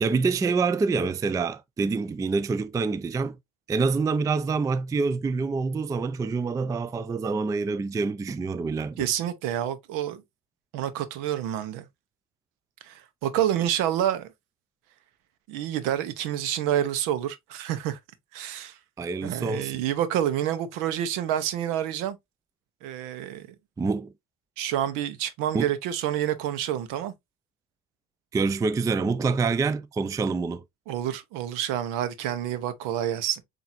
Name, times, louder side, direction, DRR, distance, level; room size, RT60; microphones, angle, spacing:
voice 1, 0.0-3.4 3.7-9.1 19.0-19.7 23.8-24.1 25.5-25.7 28.3-30.6, right 4 dB, 10° right, 0.3 m, -26 dB
voice 2, 9.0-10.2 10.7-11.9 12.8-14.3 15.5-18.0 18.3-18.8 19.2-22.2 22.8-23.5 24.6-27.1 30.9-33.4, right 11 dB, 75° right, 0.9 m, -28 dB
7.1 x 2.7 x 2.6 m
supercardioid pair, 80°, 33 cm